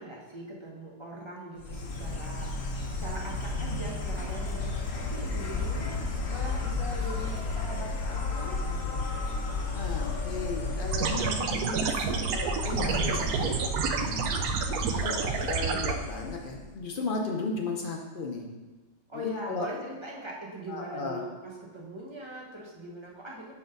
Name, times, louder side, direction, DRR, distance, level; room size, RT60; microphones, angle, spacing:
voice 1, 0.0-5.9 6.3-9.0 19.1-23.5, equal, 25° right, -4 dB, 0.8 m, -41 dB
Insect, 1.6-16.7, left 3 dB, 50° left, 0.8 m, -33 dB
sound 1, 8.9-16.5, right 1 dB, 35° left, 2.3 m, -46 dB
voice 2, 9.7-14.4 14.9-18.4 19.1-19.7 20.7-21.2, left 3 dB, 75° left, 0 dB, 0.4 m, -35 dB
sound 2, 10.9-15.9, right 6 dB, 70° right, 1.0 m, -29 dB
5.7 x 4.3 x 5.2 m, 1.3 s
omnidirectional pair, 1.8 m